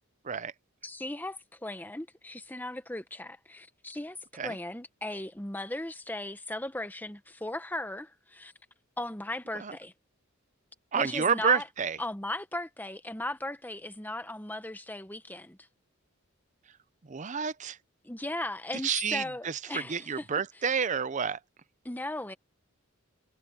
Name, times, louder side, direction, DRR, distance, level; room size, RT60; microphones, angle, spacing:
voice 1, 0.8-4.2 4.4-8.5 9.0-9.9 11.0-11.6 12.0-15.7 18.0-20.2 21.8-22.3, left 1 dB, 10° left, 0.9 m, -37 dB
voice 2, 10.9-12.0 17.0-17.8 18.8-21.4, right 6 dB, 35° right, 0.6 m, -29 dB
head